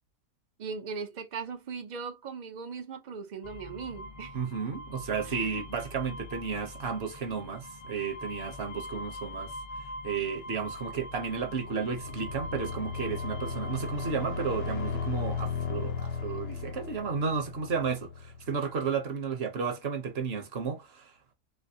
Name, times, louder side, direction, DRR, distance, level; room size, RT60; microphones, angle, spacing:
voice 1, 0.6-4.4 5.2-5.6, right 5 dB, 85° right, 0.4 m, -39 dB
sound 1, 3.4-16.9, left 1 dB, 35° left, 0.5 m, -43 dB
voice 2, 4.3-9.5 10.0-21.3, right 5 dB, 50° right, 0.8 m, -33 dB
sound 2, 11.0-18.7, left 5 dB, 75° left, 1.3 m, -36 dB
3.3 x 3.0 x 2.7 m
omnidirectional pair, 1.7 m